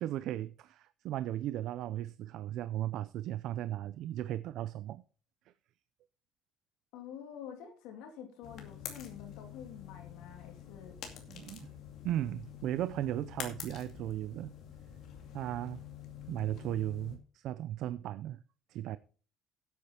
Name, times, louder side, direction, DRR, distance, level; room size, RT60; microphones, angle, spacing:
voice 1, 0.0-5.0 11.3-11.7 12.0-14.5 15.3-15.8 16.3-18.4 18.7-19.0, right 13 dB, 50° right, 0.4 m, -36 dB
voice 2, 6.9-11.0, left 8 dB, 75° left, 2.7 m, -48 dB
sound 1, 8.4-17.2, left 9 dB, 45° left, 2.4 m, -47 dB
11.5 x 8.4 x 4.3 m
cardioid pair, 180°, 0 cm